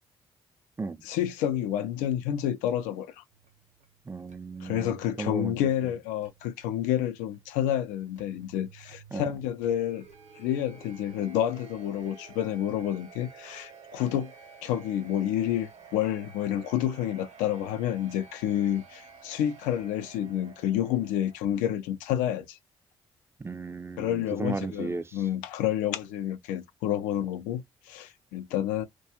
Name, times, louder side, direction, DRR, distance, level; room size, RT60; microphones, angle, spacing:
voice 1, 1.0-3.2 4.6-10.1 10.4-14.3 14.6-22.6 24.0-28.8, left 11 dB, 80° left, 0.4 m, -29 dB
sound 1, 3.3-21.4, right 5 dB, 65° right, 0.9 m, -53 dB
voice 2, 4.1-5.6 9.1-9.3 23.4-25.1, right 3 dB, 20° right, 0.4 m, -35 dB
2.2 x 2.2 x 2.7 m
hypercardioid pair, 40°, 13 cm